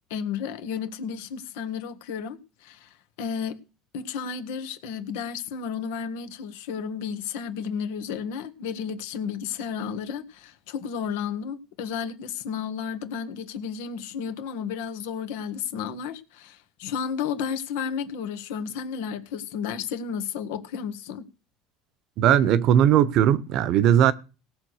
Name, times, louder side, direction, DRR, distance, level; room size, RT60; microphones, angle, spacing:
voice 1, 0.1-3.6 3.9-21.3, left 7 dB, 80° left, 1.6 m, -32 dB
voice 2, 22.2-24.1, right 10 dB, 60° right, 1.1 m, -18 dB
17.5 x 6.6 x 6.5 m
supercardioid pair, 100°, 0 cm